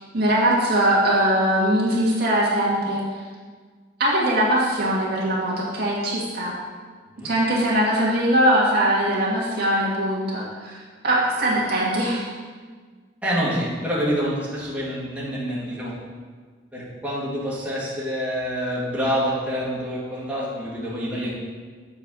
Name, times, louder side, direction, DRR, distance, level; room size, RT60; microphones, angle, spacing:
voice 1, 0.1-3.0 4.0-6.5 7.2-12.3, right 1 dB, 60° right, -5 dB, 1.8 m, -21 dB
voice 2, 13.2-15.9 16.7-21.3, equal, 10° right, -7 dB, 1.7 m, -27 dB
7.0 x 4.6 x 6.1 m, 1.5 s
head